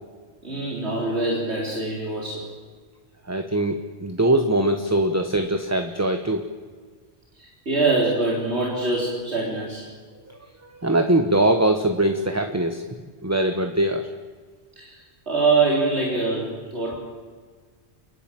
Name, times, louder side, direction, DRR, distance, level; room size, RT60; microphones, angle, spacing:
voice 1, 0.4-2.4 7.4-9.8 14.8-15.0 15.3-17.0, right 3 dB, 85° right, -4 dB, 4.1 m, -24 dB
voice 2, 3.3-6.4 10.3-10.4 10.8-12.8 13.2-14.1, right 1 dB, 15° right, 6 dB, 1.1 m, -22 dB
29.0 x 11.0 x 9.1 m, 1.5 s
omnidirectional pair, 1.1 m